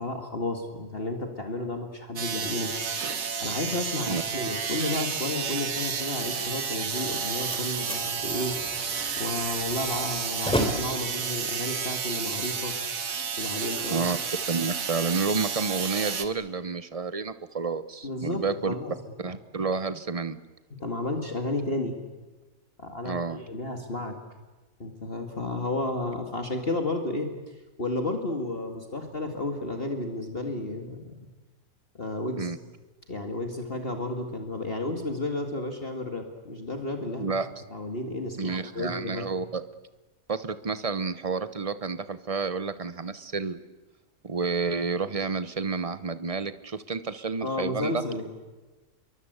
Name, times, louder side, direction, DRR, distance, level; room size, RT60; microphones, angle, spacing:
voice 1, 0.0-2.8 3.4-8.7 9.2-12.8 13.4-14.0 18.0-18.9 20.7-22.0 22.8-24.2 24.8-31.3 31.9-32.5 33.1-37.3 37.7-39.3 47.4-48.2, left 2 dB, 40° left, 4 dB, 2.4 m, -32 dB
sound 1, 2.2-16.3, right 6 dB, 70° right, 1.9 m, -31 dB
Slam, 7.0-12.9, equal, 5° left, 3.3 m, -35 dB
voice 2, 14.5-18.7 19.2-20.4 23.0-23.4 32.4-32.6 37.2-37.5 38.4-39.6 40.3-43.6 44.2-48.0, right 4 dB, 30° right, 12 dB, 0.9 m, -30 dB
28.5 x 23.0 x 8.1 m, 1.2 s
omnidirectional pair, 1.5 m